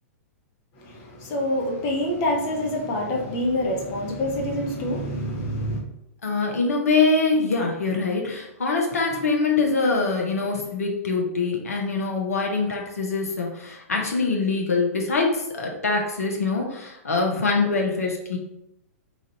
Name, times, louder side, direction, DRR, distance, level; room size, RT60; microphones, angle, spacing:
voice 1, 0.8-5.8, left 1 dB, 35° left, 0.9 m, -26 dB
voice 2, 6.2-18.4, left 3 dB, 75° left, 0.9 m, -24 dB
3.1 x 2.5 x 4.2 m
figure-of-eight pair, 110°, 8 cm